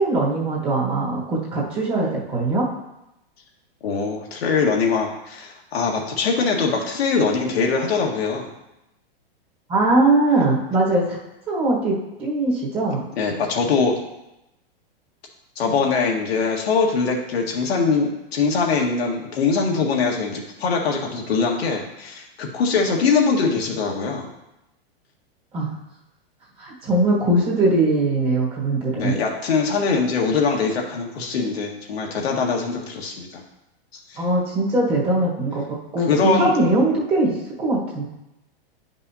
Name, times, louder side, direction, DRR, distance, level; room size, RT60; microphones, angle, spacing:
voice 1, 0.0-2.6 9.7-11.2 11.5-13.0 25.5-25.8 26.6-29.1 34.2-35.6 35.9-38.0, right 2 dB, 20° right, -4 dB, 1.4 m, -21 dB
voice 2, 3.8-8.5 13.2-14.0 15.5-24.3 28.9-33.4 34.1-34.2 36.0-36.5, left 4 dB, 90° left, 0 dB, 1.6 m, -22 dB
9.6 x 5.4 x 2.8 m, 0.90 s
supercardioid pair, 155°, 30 cm